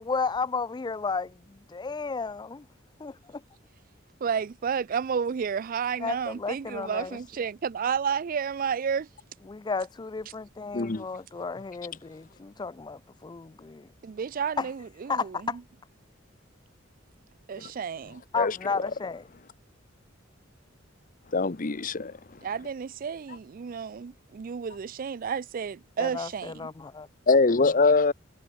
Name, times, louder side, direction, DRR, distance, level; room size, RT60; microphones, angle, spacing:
voice 1, 0.0-2.7 3.0-3.4 6.0-7.2 9.5-13.9 14.6-14.7 15.1-15.6 18.3-19.2 26.0-27.1, left 4 dB, 20° left, 0.4 m, -33 dB
voice 2, 4.2-9.1 14.0-15.5 17.5-18.2 22.4-26.7, right 6 dB, 45° right, 0.4 m, -31 dB
voice 3, 10.7-11.0 17.6-17.7 18.4-18.6 21.3-22.1 27.3-28.1, left 3 dB, 45° left, 0.9 m, -23 dB
head